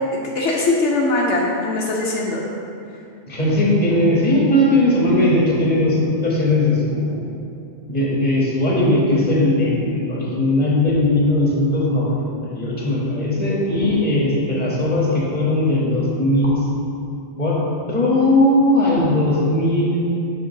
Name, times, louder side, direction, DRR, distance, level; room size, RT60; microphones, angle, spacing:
voice 1, 0.1-2.4, left 2 dB, 80° left, -2 dB, 1.1 m, -21 dB
voice 2, 3.3-7.2 7.9-16.6 17.4-17.5 17.9-20.0, left 1 dB, 35° left, -5 dB, 1.7 m, -18 dB
6.4 x 4.1 x 5.8 m, 2.6 s
omnidirectional pair, 1.2 m